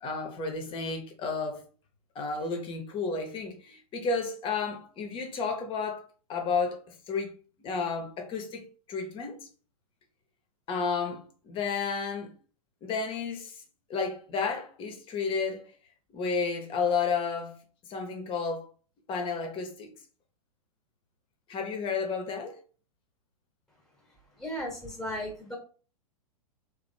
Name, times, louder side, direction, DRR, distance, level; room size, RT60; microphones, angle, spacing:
voice 1, 0.0-1.6 2.1-6.0 6.3-7.3 7.6-9.4 10.7-12.3 12.8-13.5 13.9-15.6 16.1-17.6 17.9-18.7 19.1-19.9 21.5-22.6, left 5 dB, 25° left, 1.1 m, -32 dB
voice 2, 24.4-25.6, equal, ahead, 1.3 m, -35 dB
3.2 x 2.4 x 4.4 m
figure-of-eight pair, 110°, 20 cm